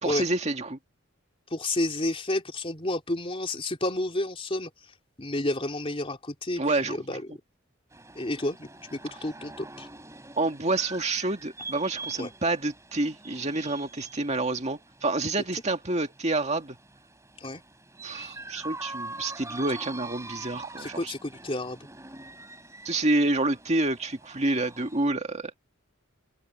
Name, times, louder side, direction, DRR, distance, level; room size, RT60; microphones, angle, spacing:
voice 1, 0.0-0.8 6.6-7.2 10.4-16.8 18.0-21.1 22.8-25.5, right 2 dB, 35° right, 2.0 m, -28 dB
voice 2, 1.5-4.7 5.2-7.2 8.1-9.9 12.2-12.3 17.4-17.6 20.8-21.8, left 1 dB, 25° left, 3.3 m, -30 dB
sound 1, 7.9-25.1, right 3 dB, 15° right, 3.6 m, -44 dB
open air
head